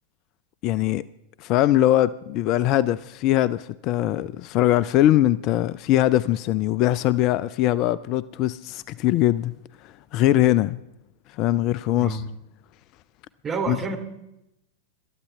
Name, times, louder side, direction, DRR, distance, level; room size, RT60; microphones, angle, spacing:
voice 1, 0.6-1.0 1.4-9.5 9.8-10.8 11.3-12.2 13.7-13.8, left 13 dB, 40° left, 0.5 m, -21 dB
voice 2, 13.4-14.0, right 4 dB, 25° right, 3.2 m, -28 dB
26.5 x 13.0 x 3.5 m
figure-of-eight pair, 90°, 0 cm